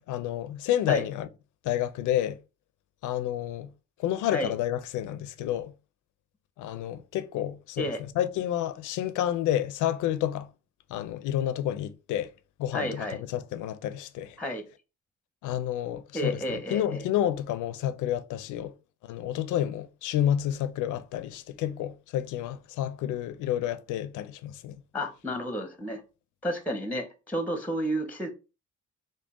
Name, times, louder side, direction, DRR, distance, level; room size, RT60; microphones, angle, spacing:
voice 1, 0.1-1.3 1.6-2.4 3.0-3.7 4.0-5.7 6.6-10.5 10.9-12.3 12.6-14.4 15.4-18.7 19.0-24.8, left 11 dB, 80° left, 0.5 m, -30 dB
voice 2, 12.7-13.2 14.4-14.6 16.1-17.0 24.9-26.0 26.4-28.3, equal, 5° left, 0.6 m, -31 dB
3.8 x 2.1 x 3.6 m
cardioid pair, 90°, 30 cm